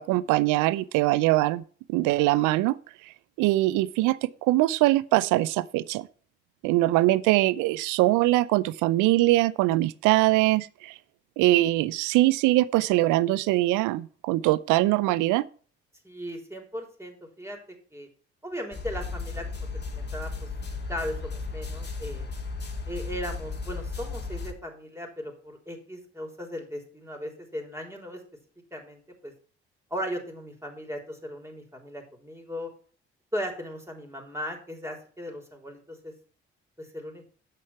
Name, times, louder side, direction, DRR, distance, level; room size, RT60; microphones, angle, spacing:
voice 1, 0.0-1.6 1.9-2.8 3.4-6.1 6.6-10.9 11.4-15.4, right 17 dB, 65° right, 0.5 m, -22 dB
voice 2, 16.0-17.6 17.9-18.1 18.4-20.5 20.9-22.3 22.9-28.2 28.7-29.3 29.9-32.7 33.3-36.1 36.8-37.3, equal, 10° right, 3.7 m, -37 dB
sound 1, 18.7-24.5, left 4 dB, 30° left, 2.2 m, -35 dB
8.4 x 6.8 x 5.7 m
hypercardioid pair, 45°, 33 cm